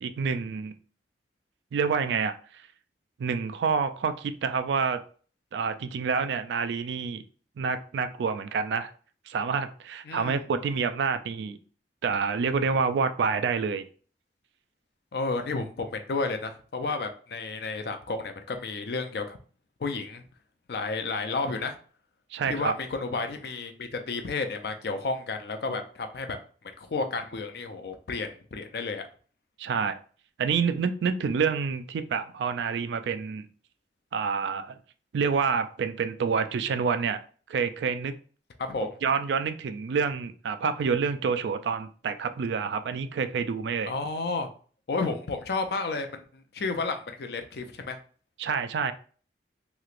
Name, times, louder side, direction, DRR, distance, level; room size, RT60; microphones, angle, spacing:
voice 1, 0.0-0.7 1.7-2.6 3.2-5.0 5.5-7.2 7.6-8.9 9.3-11.6 12.0-13.8 22.3-22.7 29.6-30.0 30.4-33.5 34.1-34.8 35.1-37.2 37.5-38.2 39.0-43.9 48.4-48.9, right 5 dB, 75° right, 11 dB, 0.3 m, -28 dB
voice 2, 10.1-10.4 15.1-19.4 19.8-20.2 20.7-21.8 22.5-26.4 26.8-29.0 38.6-38.9 43.9-44.5 44.9-46.2 46.5-48.0, left 3 dB, 60° left, 7 dB, 0.4 m, -31 dB
3.1 x 2.9 x 2.4 m, 0.42 s
head